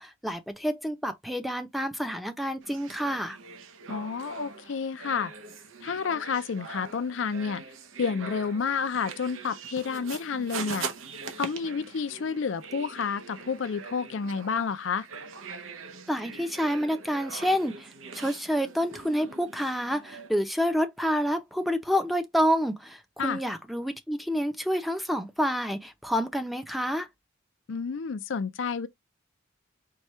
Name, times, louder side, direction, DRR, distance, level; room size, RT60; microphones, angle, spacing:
voice 1, 0.0-3.4 16.1-17.9 18.1-27.1, equal, ahead, 0.6 m, -28 dB
sound 1, 2.6-20.3, right 4 dB, 85° right, 0.9 m, -42 dB
voice 2, 3.9-5.3 5.8-7.6 8.0-10.9 11.4-15.1 23.2-23.4 27.7-28.9, left 5 dB, 70° left, 0.5 m, -30 dB
4.7 x 2.3 x 4.2 m
head